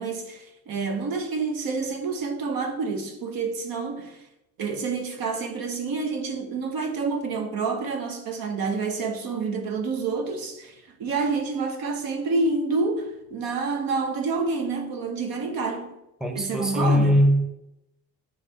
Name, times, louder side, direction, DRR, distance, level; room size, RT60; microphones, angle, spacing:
voice 1, 0.0-4.2 4.6-16.0 16.3-17.1, right 4 dB, 80° right, 1.1 m, -28 dB
voice 2, 16.2-17.5, equal, ahead, 0.6 m, -20 dB
9.6 x 3.2 x 3.6 m
cardioid pair, 110°, 35 cm